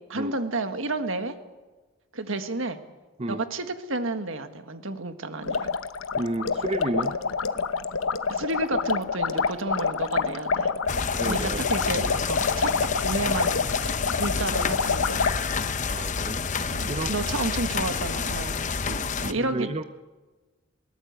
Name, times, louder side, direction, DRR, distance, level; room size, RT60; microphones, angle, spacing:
voice 1, 0.1-1.3 2.1-2.8 3.3-5.7 8.3-10.7 11.2-12.7 13.0-13.6 14.2-15.3 16.7-18.6 19.2-19.8, right 2 dB, 70° right, 8 dB, 1.7 m, -31 dB
sound 1, 5.4-15.4, left 5 dB, 80° left, 0.9 m, -27 dB
voice 2, 6.2-7.1 11.1-11.6 14.3-14.4 15.9-17.1 18.9-19.8, right 2 dB, 30° right, 10 dB, 0.6 m, -32 dB
sound 2, 10.9-19.3, left 5 dB, 35° left, 0.7 m, -29 dB
21.5 x 18.5 x 8.1 m, 1.3 s
head